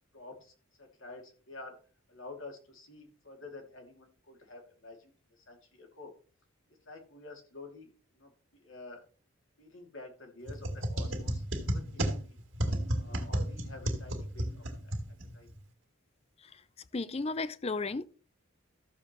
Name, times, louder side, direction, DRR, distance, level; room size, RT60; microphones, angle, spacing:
voice 1, 0.1-1.8 2.1-6.1 6.8-9.0 9.6-12.4 12.9-15.0 15.3-15.5, left 3 dB, 65° left, 2.6 m, -50 dB
sound 1, 10.5-15.6, equal, 60° right, 2.2 m, -33 dB
voice 2, 16.9-18.0, left 3 dB, 30° left, 0.5 m, -33 dB
14.0 x 7.1 x 3.0 m
head